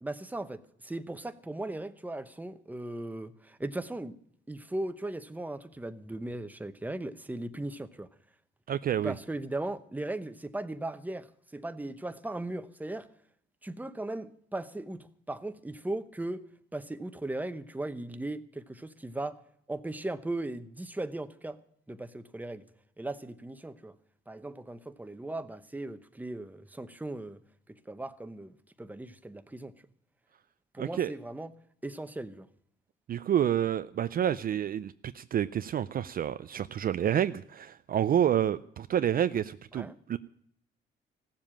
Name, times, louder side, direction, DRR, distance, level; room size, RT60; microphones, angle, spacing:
voice 1, 0.0-4.2 4.5-8.1 9.0-13.1 13.6-16.4 16.7-19.4 19.7-21.6 21.9-22.7 23.0-24.0 24.3-27.4 27.7-29.7 30.7-31.5 31.8-32.5 39.7-40.0, right 2 dB, 10° right, 0.9 m, -38 dB
voice 2, 8.7-9.1 30.8-31.1 33.1-40.2, right 10 dB, 45° right, 0.4 m, -29 dB
15.5 x 7.4 x 8.8 m
cardioid pair, 90°, 20 cm